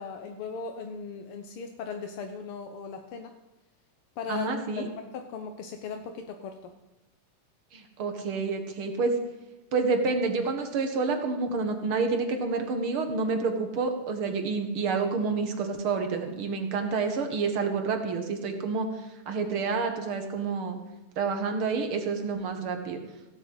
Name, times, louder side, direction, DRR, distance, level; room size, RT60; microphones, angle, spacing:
voice 1, 0.0-3.3 4.2-6.7, left 5 dB, 65° left, 5 dB, 1.5 m, -38 dB
voice 2, 4.3-4.9 7.7-9.2 9.7-20.8 21.2-23.0, right 4 dB, 50° right, 5 dB, 2.3 m, -28 dB
16.5 x 8.1 x 7.9 m, 1.0 s
omnidirectional pair, 3.4 m